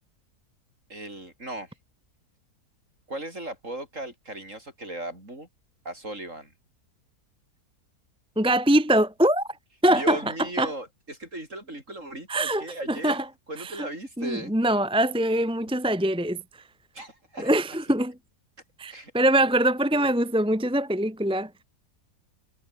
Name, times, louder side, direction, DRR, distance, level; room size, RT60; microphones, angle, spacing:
voice 1, 0.9-1.7 3.1-5.5 5.9-6.5 9.9-13.2 13.5-14.5 16.9-17.5 18.9-19.1, right 1 dB, 50° right, 8.6 m, -37 dB
voice 2, 8.4-9.5 9.8-10.2 10.6-10.7 12.3-13.2 13.6-13.9 14.2-16.4 17.4-18.1 18.8-21.5, right 1 dB, 5° right, 1.5 m, -23 dB
omnidirectional pair, 1.7 m